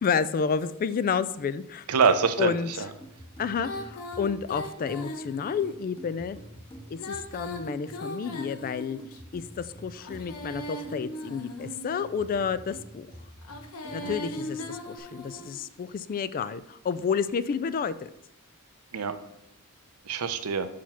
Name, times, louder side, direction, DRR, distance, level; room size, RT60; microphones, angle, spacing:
voice 1, 0.0-1.9 2.4-2.9 3.4-6.4 6.9-9.0 9.3-13.1 13.9-18.1, left 6 dB, 40° left, 15 dB, 0.3 m, -30 dB
voice 2, 1.9-2.9 14.0-14.2 18.9-19.1 20.1-20.7, right 5 dB, 80° right, 10 dB, 0.6 m, -25 dB
sound 1, 3.0-15.0, right 1 dB, 25° left, 1.3 m, -48 dB
Female singing, 3.6-5.8 6.9-9.2 10.0-12.1 13.4-15.6, left 1 dB, 80° left, 0.9 m, -39 dB
5.6 x 5.0 x 5.8 m, 0.83 s
head